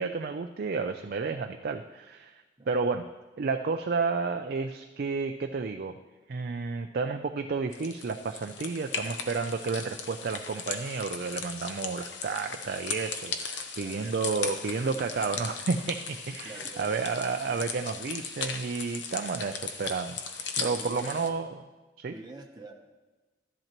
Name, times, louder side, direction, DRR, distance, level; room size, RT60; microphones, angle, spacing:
voice 1, 0.0-2.3 2.7-3.1 3.4-6.0 6.3-20.2 20.6-21.5 22.0-22.1, right 4 dB, 55° right, 5 dB, 0.4 m, -31 dB
sound 1, 7.7-21.3, left 5 dB, 70° left, 0.9 m, -38 dB
voice 2, 16.4-16.9 17.5-17.6 20.6-21.2 22.1-22.7, right 2 dB, 20° right, 1 dB, 0.8 m, -46 dB
13.0 x 10.5 x 3.0 m, 1.2 s
head